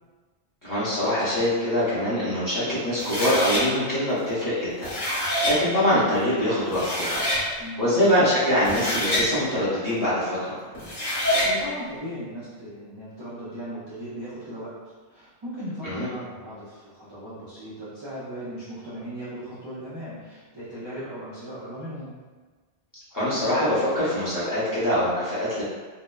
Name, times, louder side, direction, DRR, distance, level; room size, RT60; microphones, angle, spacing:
voice 1, 0.6-4.9 5.2-7.2 7.8-10.6 15.8-16.1 23.1-25.6, equal, 20° left, -12 dB, 0.7 m, -24 dB
sound 1, 3.0-3.6 4.6-5.6 6.4-6.5 6.7-7.4 8.5-9.3 10.7-11.5, left 1 dB, 50° left, 1.2 m, -26 dB
voice 2, 7.6-7.9 11.2-14.7 15.1-22.1, equal, 35° right, -11 dB, 0.4 m, -37 dB
2.8 x 2.0 x 2.2 m, 1.4 s
omnidirectional pair, 1.1 m